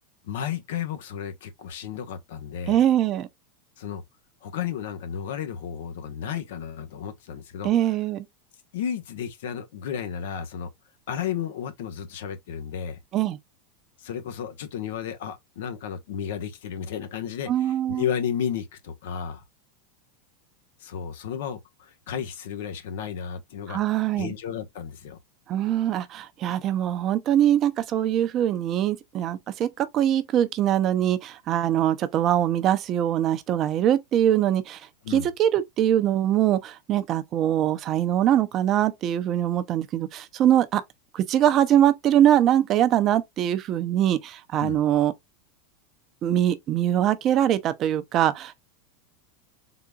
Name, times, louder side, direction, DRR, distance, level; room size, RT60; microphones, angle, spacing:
voice 1, 0.2-2.8 3.8-4.0 4.4-7.7 8.7-10.7 11.1-13.0 14.0-19.4 20.8-23.8 24.1-25.2 35.0-35.3 44.6-44.8, left 8 dB, 75° left, 0.9 m, -33 dB
voice 2, 2.7-3.3 7.6-8.2 13.1-13.4 17.5-18.0 23.7-24.3 25.5-34.8 35.1-40.8 41.1-45.1 46.2-48.5, right 11 dB, 35° right, 0.5 m, -23 dB
3.9 x 3.5 x 2.3 m
supercardioid pair, 140°, 0 cm